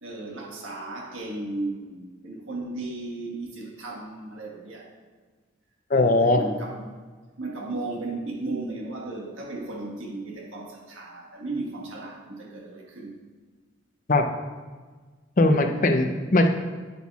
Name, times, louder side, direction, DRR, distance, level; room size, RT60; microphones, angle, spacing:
voice 1, 0.0-4.9 5.9-6.9 7.4-13.1 15.6-15.9, right 2 dB, 70° right, -1 dB, 1.5 m, -35 dB
voice 2, 5.9-6.4 14.1-14.2 15.4-16.5, left 2 dB, 40° left, 5 dB, 0.5 m, -19 dB
9.8 x 8.1 x 2.4 m, 1.4 s
head